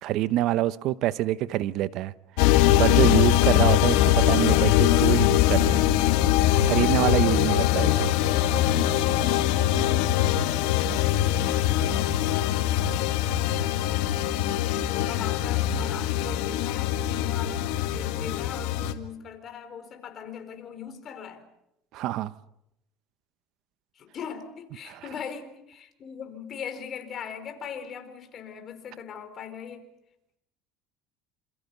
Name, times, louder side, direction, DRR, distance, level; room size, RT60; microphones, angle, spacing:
voice 1, 0.0-2.1 2.8-5.9 6.6-8.1 21.9-22.3 24.9-25.0, right 14 dB, 60° right, 0.9 m, -26 dB
sound 1, 2.4-18.9, left 12 dB, 80° left, 1.8 m, -22 dB
voice 2, 5.1-5.5 13.7-21.4 23.9-29.8, left 7 dB, 40° left, 4.1 m, -40 dB
27.5 x 27.5 x 5.5 m
supercardioid pair, 120°, 0 cm